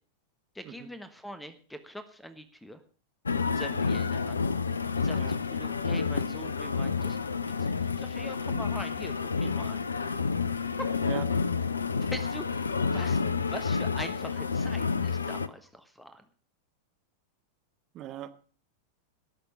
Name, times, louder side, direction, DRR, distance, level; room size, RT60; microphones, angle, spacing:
voice 1, 0.5-2.8 3.5-4.4 4.9-9.8 10.7-10.9 12.0-16.3, equal, 5° left, 12 dB, 1.3 m, -43 dB
sound 1, 3.3-15.5, left 5 dB, 75° left, 0.6 m, -29 dB
voice 2, 17.9-18.3, right 12 dB, 35° right, 8 dB, 1.4 m, -40 dB
19.0 x 6.8 x 6.5 m, 0.40 s
figure-of-eight pair, 90°, 0 cm